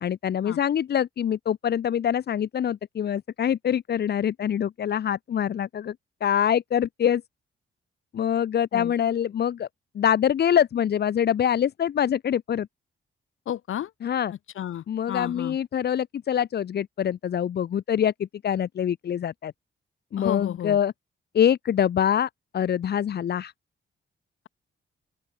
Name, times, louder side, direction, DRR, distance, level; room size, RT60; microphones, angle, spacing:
voice 1, 0.0-5.9 6.2-7.2 8.1-9.7 9.9-12.7 14.0-14.3 14.9-19.5 20.1-20.9 21.3-23.5, left 9 dB, 55° left, 0.7 m, -25 dB
voice 2, 13.5-13.9 14.6-15.6 20.2-20.8, left 11 dB, 80° left, 1.7 m, -32 dB
open air
cardioid pair, 120°, 21 cm